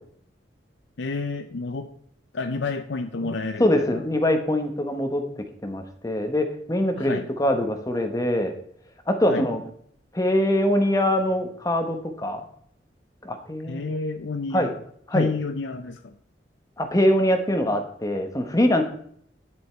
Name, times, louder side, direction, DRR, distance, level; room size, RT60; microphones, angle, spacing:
voice 1, 1.0-1.9 2.3-4.0 7.0-7.3 9.3-9.5 13.7-14.7 15.1-16.2, left 3 dB, 80° left, 7 dB, 0.6 m, -30 dB
voice 2, 3.6-5.2 5.6-8.5 9.1-9.6 10.1-12.5 13.2-14.0 14.5-14.7 15.1-15.3 16.8-18.8, left 1 dB, 20° left, 6 dB, 1.1 m, -23 dB
9.7 x 7.7 x 4.5 m, 0.64 s
head